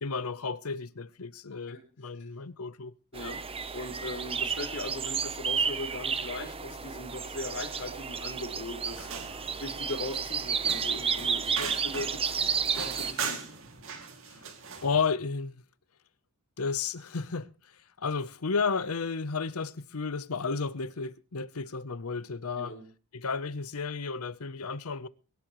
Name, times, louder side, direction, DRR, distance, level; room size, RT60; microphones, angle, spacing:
voice 1, 0.0-2.9 14.8-15.6 16.6-17.5 18.0-22.8 23.1-25.1, left 5 dB, 75° left, 0.8 m, -32 dB
voice 2, 3.1-9.3 9.6-13.5 22.5-22.8, left 1 dB, 55° left, 5.0 m, -39 dB
sound 1, 3.1-13.1, right 6 dB, 25° right, 0.8 m, -32 dB
sound 2, 8.9-15.0, right 6 dB, 65° right, 2.5 m, -40 dB
24.0 x 11.5 x 3.1 m
head